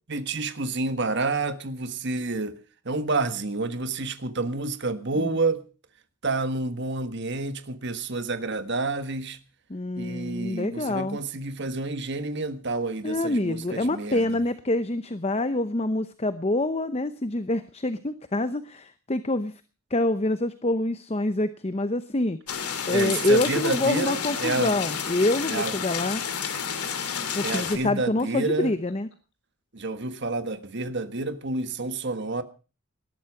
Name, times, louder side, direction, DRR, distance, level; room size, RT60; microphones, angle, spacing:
voice 1, 0.1-2.6 2.8-5.6 6.2-9.4 10.0-14.4 22.9-24.8 25.5-25.7 27.4-28.7 29.7-32.4, right 3 dB, 50° right, 1.5 m, -29 dB
voice 2, 9.7-11.2 13.0-19.5 19.9-22.4 22.9-26.2 27.3-29.1, left 2 dB, 25° left, 0.7 m, -26 dB
sound 1, 22.5-27.8, left 7 dB, 90° left, 2.8 m, -30 dB
Laughter, 26.2-29.1, left 1 dB, 55° left, 3.5 m, -52 dB
19.5 x 12.5 x 4.8 m
head